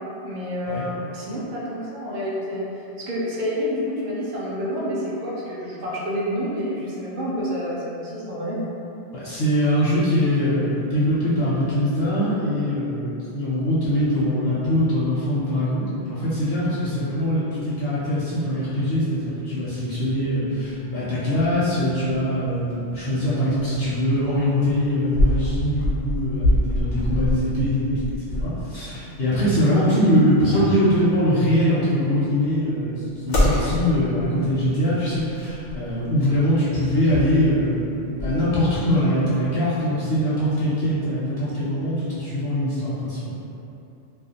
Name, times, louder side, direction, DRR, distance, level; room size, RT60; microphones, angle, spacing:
voice 1, 0.2-8.6, equal, 60° right, -6 dB, 0.5 m, -28 dB
voice 2, 9.1-37.8 38.0-43.3, equal, 60° left, -10 dB, 0.8 m, -22 dB
sound 1, 19.8-38.9, left 1 dB, 75° left, 1.0 m, -28 dB
2.5 x 2.2 x 2.7 m, 2.9 s
omnidirectional pair, 1.2 m